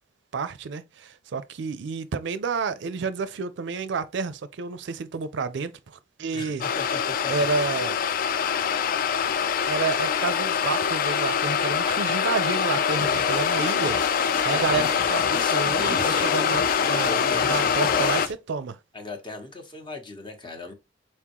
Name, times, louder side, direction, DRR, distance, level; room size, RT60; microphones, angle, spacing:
voice 1, 0.3-5.7 6.2-6.6 7.3-8.0 9.7-15.2 15.5-18.2 18.5-18.8, right 4 dB, 65° right, 0.4 m, -30 dB
voice 2, 6.3-7.3 14.5-18.2 18.9-20.7, left 3 dB, 25° left, 0.9 m, -37 dB
sound 1, 6.6-18.3, left 7 dB, 50° left, 0.3 m, -24 dB
sound 2, 13.0-18.3, left 3 dB, 75° left, 1.3 m, -39 dB
4.4 x 3.6 x 2.9 m
head